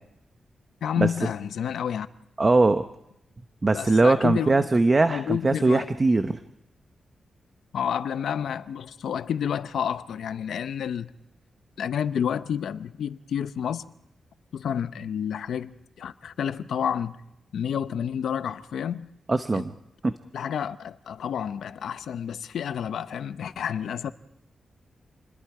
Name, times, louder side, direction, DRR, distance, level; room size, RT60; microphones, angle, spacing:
voice 1, 0.8-2.1 3.7-4.7 5.1-5.9 7.7-11.1 11.8-13.9 14.5-17.2 17.5-19.1 19.5-19.7 20.3-24.1, left 8 dB, 90° left, 0.8 m, -30 dB
voice 2, 2.4-2.8 3.6-6.4 19.3-19.7 20.0-20.1, right 3 dB, 30° right, 0.9 m, -21 dB
28.0 x 21.0 x 4.9 m
cardioid pair, 80°, 0 cm